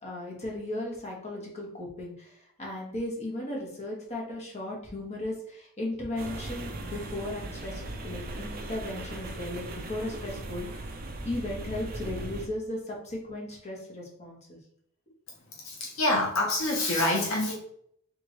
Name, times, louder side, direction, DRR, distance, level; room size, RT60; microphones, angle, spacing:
voice 1, 0.0-10.7 11.2-14.6, left 1 dB, 30° left, -2 dB, 1.3 m, -36 dB
sound 1, 6.2-12.5, right 2 dB, 40° right, 0.6 m, -38 dB
voice 2, 15.6-17.5, left 2 dB, 60° left, -1 dB, 0.9 m, -26 dB
4.8 x 3.5 x 3.2 m, 0.67 s
head